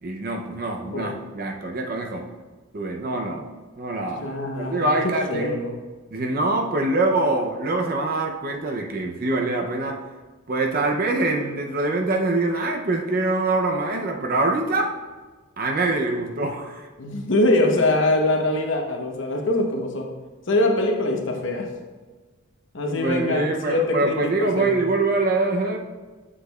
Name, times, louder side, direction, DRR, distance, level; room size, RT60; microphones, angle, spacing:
voice 1, 0.0-2.3 2.7-3.5 3.8-4.3 4.6-5.6 6.1-10.0 10.5-14.9 15.6-16.9 22.9-25.8, right 2 dB, 45° right, 2 dB, 0.5 m, -24 dB
voice 2, 4.2-4.9 5.3-5.7 17.0-20.1 20.5-21.7 22.7-24.8, left 2 dB, 60° left, 2 dB, 0.9 m, -23 dB
7.4 x 6.5 x 2.3 m, 1.3 s
head